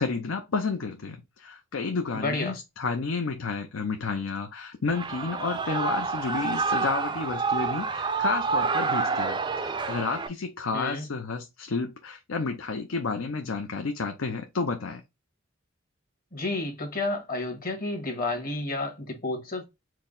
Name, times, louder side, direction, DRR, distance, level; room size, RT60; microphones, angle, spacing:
voice 1, 0.0-15.0, left 4 dB, 75° left, 0.6 m, -31 dB
voice 2, 2.1-2.6 10.7-11.1 16.3-19.6, left 2 dB, 45° left, 1.4 m, -31 dB
Shout / Cheering, 4.9-10.3, right 4 dB, 20° right, 0.4 m, -28 dB
4.5 x 2.1 x 3.8 m
head